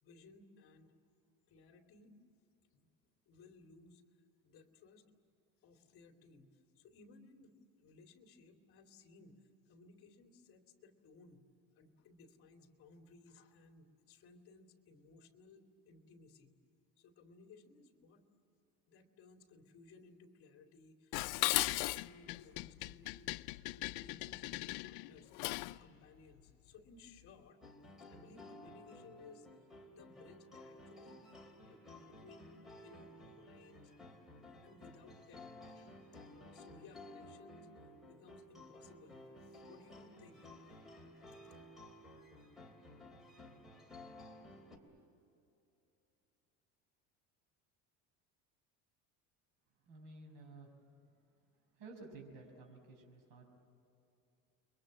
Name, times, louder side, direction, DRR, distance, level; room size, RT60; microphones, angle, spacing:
voice 1, 0.0-0.9 1.5-2.2 2.7-2.9 3.3-4.0 4.4-5.0 5.6-6.5 6.7-11.5 11.7-16.5 17.0-18.3 18.9-23.3 23.7-25.3 25.6-27.6 28.1-31.3 31.6-33.9 34.6-36.0 36.3-37.7 38.1-40.5 41.3-41.4, left 4 dB, 40° left, 4 dB, 2.7 m, -60 dB
Dishes pots and pans, 21.1-25.8, left 21 dB, 80° left, 0.6 m, -37 dB
sound 1, 27.6-44.8, left 1 dB, ahead, 3.0 m, -55 dB
voice 2, 49.8-50.8 51.7-53.5, right 3 dB, 75° right, 1 dB, 6.4 m, -53 dB
30.0 x 23.0 x 7.6 m, 2.8 s
cardioid pair, 165°, 34 cm